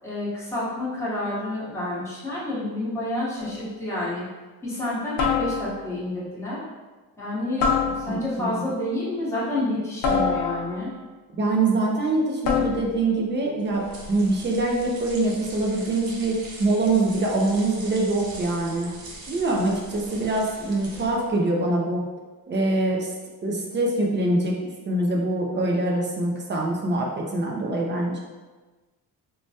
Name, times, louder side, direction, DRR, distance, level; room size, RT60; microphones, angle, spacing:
voice 1, 0.0-4.2 4.6-6.6 7.2-10.9, left 1 dB, 5° left, -9 dB, 0.9 m, -29 dB
sound 1, 3.4-3.7 5.2-6.0 7.6-8.4 10.0-11.0 12.4-13.0, left 5 dB, 75° left, 0.6 m, -25 dB
voice 2, 8.1-8.6 11.4-18.9 19.3-22.0 22.5-23.1 23.4-24.6 24.9-28.2, right 2 dB, 30° right, -1 dB, 0.4 m, -24 dB
sound 2, 13.6-21.4, right 2 dB, 75° right, 0.7 m, -42 dB
3.2 x 2.1 x 2.7 m, 1.3 s
cardioid pair, 150°, 36 cm